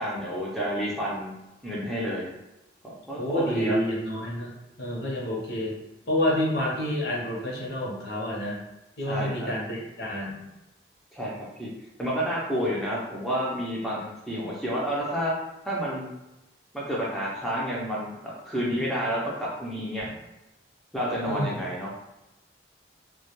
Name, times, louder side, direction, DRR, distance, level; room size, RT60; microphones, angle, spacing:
voice 1, 0.0-1.3 1.6-2.3 2.8-3.8 9.1-9.5 11.1-11.3 11.6-11.7 12.0-15.3 15.6-16.1 16.7-18.2 18.4-20.1 20.9-21.9, equal, ahead, -7 dB, 0.4 m, -29 dB
voice 2, 3.2-5.8 6.1-8.6 9.0-10.4 21.2-21.6, equal, 65° left, -4 dB, 0.7 m, -29 dB
2.2 x 2.1 x 2.9 m, 0.96 s
head